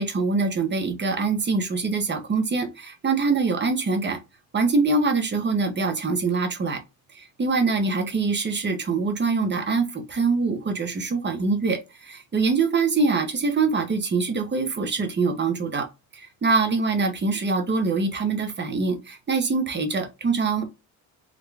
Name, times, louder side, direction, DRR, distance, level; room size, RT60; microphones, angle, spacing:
voice 1, 0.0-4.2 4.5-6.8 7.1-15.9 16.1-20.6, right 4 dB, 30° right, 0.9 m, -24 dB
3.7 x 2.2 x 3.3 m
cardioid pair, 105°, 38 cm